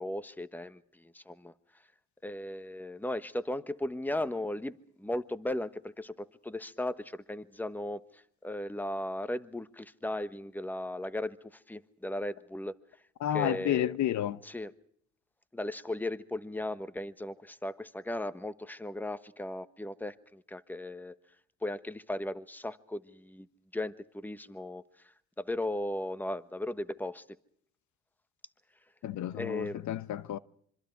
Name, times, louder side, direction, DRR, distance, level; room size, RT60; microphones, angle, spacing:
voice 1, 0.0-1.5 2.2-11.4 11.7-12.7 13.3-13.9 14.4-14.7 15.5-21.2 21.6-23.5 23.7-24.8 25.4-27.2 29.3-29.8, left 1 dB, 5° left, 1.2 m, -36 dB
voice 2, 13.2-14.4 29.0-30.4, left 11 dB, 70° left, 0.9 m, -31 dB
26.0 x 24.5 x 4.7 m
cardioid pair, 90°, 30 cm